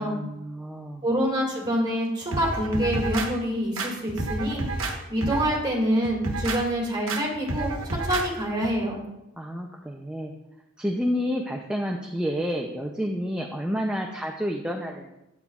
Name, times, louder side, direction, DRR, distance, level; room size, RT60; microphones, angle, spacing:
voice 1, 0.0-1.1 9.4-10.3 10.8-15.2, equal, 5° right, 1 dB, 0.4 m, -30 dB
voice 2, 1.0-4.6 5.1-9.0, equal, 20° right, -2 dB, 2.1 m, -26 dB
sound 1, 2.3-3.3 3.8-4.9 5.2-5.6 6.0-6.6 7.1-7.2 7.5-8.3 8.6-8.7, right 2 dB, 65° right, 1.1 m, -29 dB
9.1 x 8.4 x 2.3 m, 0.91 s
head